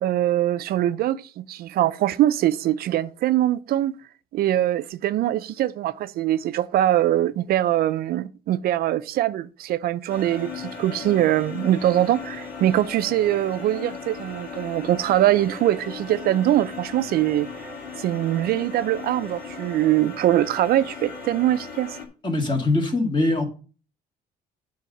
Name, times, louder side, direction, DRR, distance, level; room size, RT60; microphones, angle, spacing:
voice 1, 0.0-4.0 4.3-17.5 18.0-22.0, right 13 dB, 65° right, 0.5 m, -22 dB
sound 1, 10.1-22.1, left 5 dB, 70° left, 2.7 m, -37 dB
voice 2, 22.2-23.5, left 2 dB, 30° left, 2.1 m, -22 dB
8.3 x 4.0 x 6.4 m
cardioid pair, 110°, 17 cm